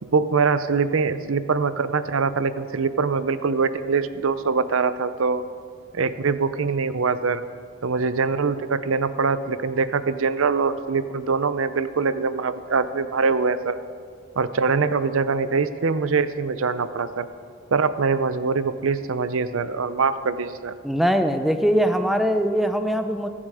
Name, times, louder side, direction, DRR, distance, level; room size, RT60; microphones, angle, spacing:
voice 1, 0.0-5.4 5.9-7.4 7.8-13.8 14.4-17.3 17.7-20.7, right 4 dB, 75° right, 13 dB, 0.6 m, -23 dB
voice 2, 20.8-23.3, equal, ahead, 7 dB, 0.6 m, -21 dB
21.5 x 7.4 x 4.9 m, 2.1 s
head